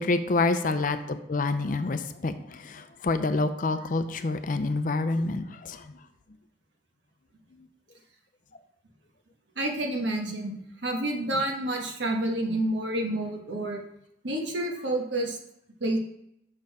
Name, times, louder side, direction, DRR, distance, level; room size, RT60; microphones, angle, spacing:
voice 1, 0.0-5.9, left 3 dB, 45° left, 10 dB, 0.5 m, -27 dB
voice 2, 9.6-13.8 14.2-15.4 15.8-16.0, right 1 dB, 75° right, 1 dB, 1.3 m, -29 dB
6.4 x 4.6 x 4.7 m, 0.78 s
head